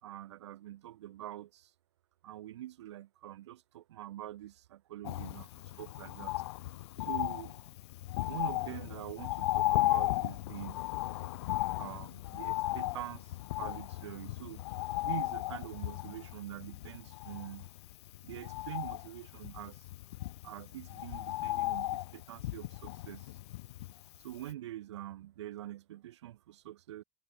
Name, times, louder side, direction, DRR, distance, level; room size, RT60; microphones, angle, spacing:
voice 1, 0.0-1.7 2.2-5.5 5.8-6.4 7.0-7.5 8.3-10.8 11.8-14.6 15.0-17.7 18.2-19.8 20.4-23.3 24.2-27.0, right 13 dB, 70° right, 1.4 m, -45 dB
Bird, 5.0-24.2 24.5-24.6, left 17 dB, 65° left, 0.4 m, -36 dB
figure-of-eight pair, 65°, 15 cm